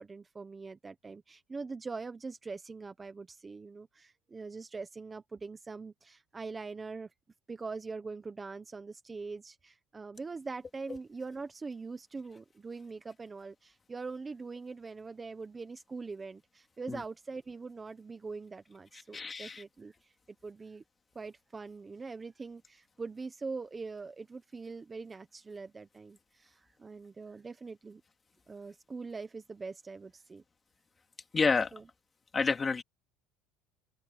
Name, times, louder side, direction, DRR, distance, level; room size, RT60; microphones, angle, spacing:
voice 1, 0.0-7.1 7.5-20.8 21.1-28.0 28.5-30.4 31.7-31.8, right 4 dB, 15° right, 0.9 m, -43 dB
voice 2, 19.1-19.6 31.3-31.7 32.3-32.8, left 4 dB, 20° left, 2.2 m, -29 dB
open air
cardioid pair, 160°, 0 cm